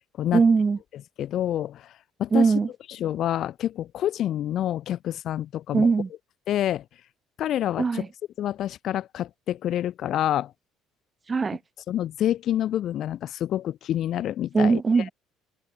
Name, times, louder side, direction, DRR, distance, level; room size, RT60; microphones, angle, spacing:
voice 1, 0.3-0.8 2.3-2.7 5.7-6.1 7.8-8.1 11.3-11.6 14.5-15.1, right 4 dB, 30° right, 2.5 m, -20 dB
voice 2, 1.2-1.9 2.2-2.5 3.0-5.9 6.5-6.8 7.4-8.0 8.4-10.5 11.9-14.8, left 11 dB, 60° left, 1.0 m, -27 dB
supercardioid pair, 80°, 0 cm